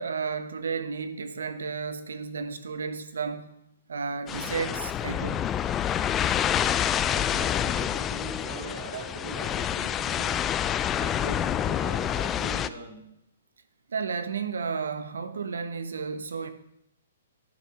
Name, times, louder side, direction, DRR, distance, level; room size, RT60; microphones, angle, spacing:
voice 1, 0.0-3.5 3.9-5.5 13.9-16.5, right 5 dB, 90° right, 1.0 m, -32 dB
sound 1, 4.3-12.7, left 10 dB, 15° left, 0.3 m, -27 dB
voice 2, 7.1-10.4 11.0-13.1, right 4 dB, 60° right, 2.9 m, -41 dB
10.5 x 6.4 x 6.0 m
hypercardioid pair, 155°, 0 cm